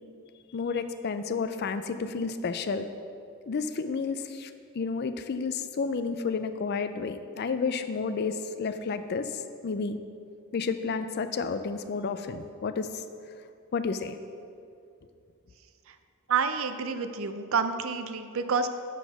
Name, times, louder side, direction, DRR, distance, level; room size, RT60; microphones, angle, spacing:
voice 1, 0.5-2.9 3.5-10.0 10.5-13.0 13.7-14.2, left 5 dB, 45° left, 10 dB, 0.4 m, -31 dB
voice 2, 16.3-18.7, right 5 dB, 60° right, 9 dB, 0.5 m, -28 dB
6.9 x 6.0 x 6.0 m, 2.4 s
head